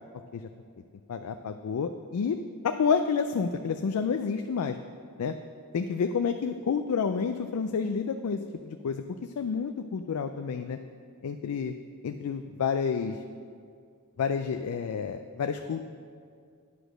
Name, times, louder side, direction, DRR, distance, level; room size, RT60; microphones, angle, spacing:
voice 1, 1.1-2.4 2.6-4.8 5.2-5.3 5.7-8.4 8.7-9.0 9.4-10.8 11.2-11.7 12.0-13.2 14.2-15.9, left 6 dB, 85° left, 7 dB, 0.4 m, -29 dB
9.6 x 5.0 x 6.4 m, 2.2 s
head